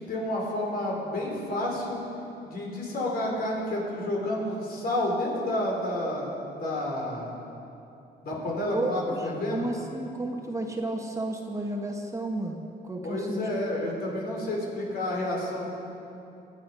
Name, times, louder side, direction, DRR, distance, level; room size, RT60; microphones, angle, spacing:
voice 1, 0.1-2.0 2.4-7.3 8.2-9.7 13.0-15.7, left 1 dB, 60° left, -2 dB, 4.4 m, -30 dB
voice 2, 8.7-13.6, right 2 dB, 15° right, 1 dB, 1.3 m, -32 dB
24.5 x 9.1 x 5.5 m, 2.8 s
cardioid pair, 120°, 18 cm